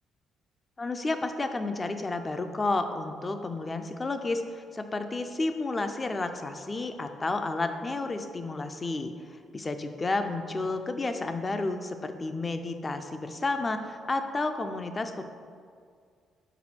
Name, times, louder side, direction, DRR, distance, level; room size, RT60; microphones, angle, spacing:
voice 1, 0.8-9.1 9.5-15.2, left 3 dB, 30° left, 8 dB, 0.5 m, -31 dB
6.0 x 4.3 x 4.3 m, 2.2 s
cardioid pair, 90°, 0 cm